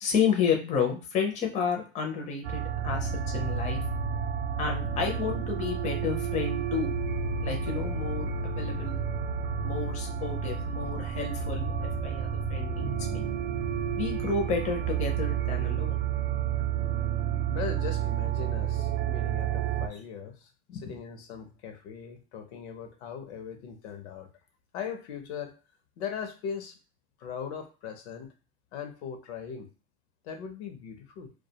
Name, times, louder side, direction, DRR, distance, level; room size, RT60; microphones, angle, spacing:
voice 1, 0.0-3.8 4.6-6.9 7.4-9.0 9.6-13.3 14.0-16.0 20.7-20.8, left 6 dB, 20° left, 2 dB, 0.5 m, -31 dB
sound 1, 2.4-19.9, right 7 dB, 45° right, 0.4 m, -30 dB
voice 2, 17.5-20.5 20.8-24.3 24.7-25.5 26.0-26.8 27.2-28.3 28.7-29.7 30.2-31.3, left 7 dB, 80° left, 6 dB, 0.7 m, -39 dB
2.3 x 2.2 x 2.7 m, 0.35 s
supercardioid pair, 140°, 34 cm